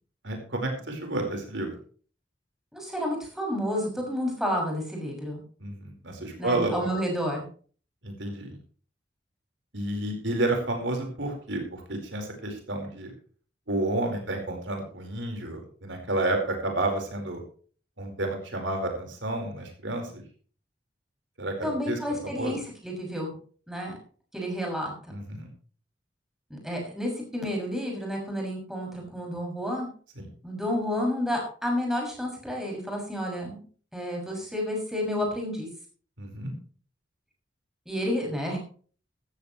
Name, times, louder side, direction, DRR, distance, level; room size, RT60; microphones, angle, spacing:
voice 1, 0.2-1.7 5.6-6.9 8.0-8.6 9.7-13.1 13.7-17.4 18.0-20.2 21.4-22.0 22.4-22.5 25.1-25.5 30.2-30.3 36.2-36.5, right 2 dB, 80° right, 3 dB, 4.5 m, -30 dB
voice 2, 2.7-5.4 6.4-7.4 21.6-23.3 23.7-23.9 24.3-24.9 26.5-29.9 30.4-33.6 33.9-35.7 37.9-38.6, equal, 5° right, 0 dB, 6.4 m, -30 dB
15.5 x 15.0 x 3.2 m, 0.42 s
head